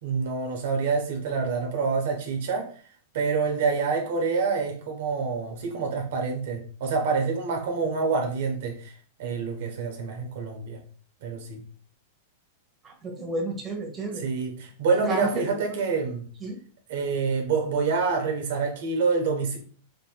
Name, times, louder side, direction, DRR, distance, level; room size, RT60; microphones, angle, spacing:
voice 1, 0.0-2.7 3.1-10.8 11.2-11.6 14.2-16.3 16.9-19.6, right 4 dB, 70° right, 1.0 m, -27 dB
voice 2, 12.8-14.2 15.0-15.4 15.7-15.8 16.4-16.6, right 2 dB, 20° right, 1.3 m, -31 dB
5.2 x 2.9 x 2.3 m
hypercardioid pair, 130°, 0 cm